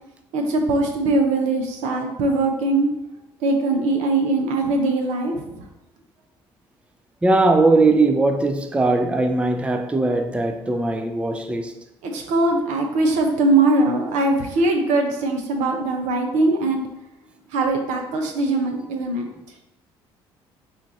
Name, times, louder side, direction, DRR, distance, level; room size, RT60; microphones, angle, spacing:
voice 1, 0.3-2.9 3.4-5.6 12.0-16.8 17.5-19.3, right 2 dB, 75° right, 0.7 m, -21 dB
voice 2, 7.2-11.8, right 2 dB, 10° right, 0.4 m, -19 dB
4.4 x 2.5 x 4.0 m
hypercardioid pair, 60°, 12 cm